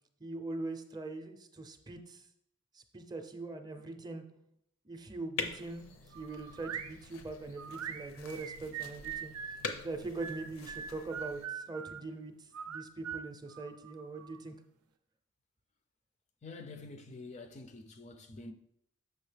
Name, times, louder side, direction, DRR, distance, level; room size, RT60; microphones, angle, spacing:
voice 1, 0.2-2.2 2.7-4.2 4.8-5.9 6.1-9.6 9.8-14.6, right 3 dB, 20° right, 0.5 m, -42 dB
sound 1, 5.4-11.5, left 4 dB, 70° left, 0.6 m, -44 dB
sound 2, 6.1-6.9 7.6-9.6 10.2-12.0 12.5-14.4, right 8 dB, 80° right, 0.5 m, -42 dB
voice 2, 16.4-18.5, left 3 dB, 30° left, 0.4 m, -47 dB
6.3 x 5.4 x 3.3 m
head